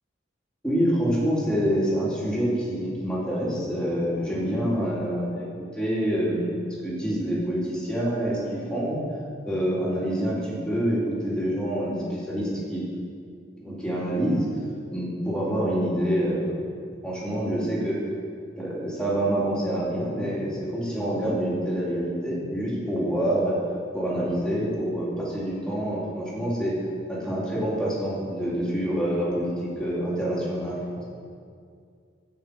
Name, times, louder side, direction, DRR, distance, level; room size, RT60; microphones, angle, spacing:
voice 1, 0.6-5.5 5.7-9.0 9.4-12.8 13.6-14.5 14.9-18.0 18.6-23.6 23.9-26.8 27.1-31.0, equal, 5° left, -7 dB, 3.0 m, -26 dB
16.5 x 6.2 x 5.2 m, 2.2 s
head